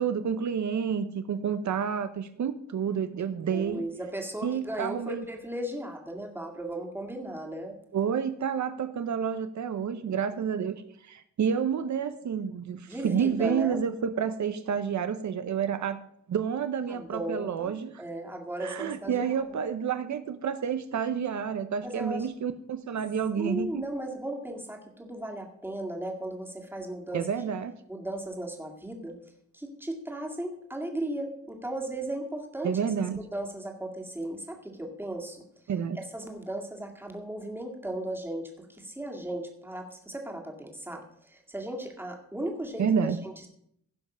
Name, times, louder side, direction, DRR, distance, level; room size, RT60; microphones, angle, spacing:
voice 1, 0.0-3.8 4.4-5.2 7.9-10.8 11.0-16.0 16.3-18.0 18.6-23.8 27.1-27.7 32.6-33.2 35.7-36.0 42.8-43.2, right 7 dB, 70° right, 10 dB, 0.7 m, -29 dB
voice 2, 3.5-7.7 12.9-13.8 16.9-17.7 18.0-19.6 21.8-22.3 23.4-27.3 27.9-29.2 29.5-32.7 33.2-35.4 36.0-42.8 43.2-43.5, right 1 dB, 5° right, 2 dB, 2.0 m, -36 dB
16.0 x 5.6 x 6.1 m, 0.70 s
wide cardioid pair, 145°, 29 cm